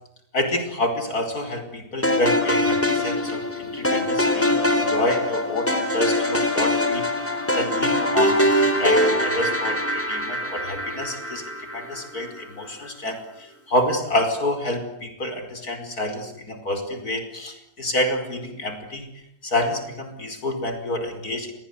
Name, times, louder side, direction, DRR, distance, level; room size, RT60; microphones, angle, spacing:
voice 1, 0.3-7.1 7.6-19.1 19.4-21.5, left 1 dB, 70° left, 7 dB, 5.5 m, -28 dB
sound 1, 2.0-12.3, left 1 dB, 10° left, 3.9 m, -23 dB
29.0 x 23.5 x 8.3 m, 0.79 s
omnidirectional pair, 1.6 m